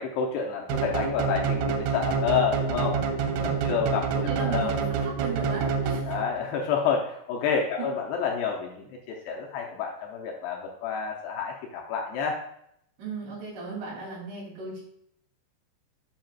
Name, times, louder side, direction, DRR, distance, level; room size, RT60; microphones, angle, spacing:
voice 1, 0.0-3.0 3.4-4.1 4.4-4.7 6.1-12.4, left 6 dB, 85° left, 0 dB, 2.5 m, -29 dB
sound 1, 0.7-6.5, right 5 dB, 85° right, 3.1 m, -27 dB
voice 2, 3.1-3.8 4.1-6.2 7.8-7.9 13.0-14.8, right 3 dB, 70° right, -6 dB, 5.0 m, -36 dB
8.9 x 5.8 x 2.4 m, 0.72 s
omnidirectional pair, 5.3 m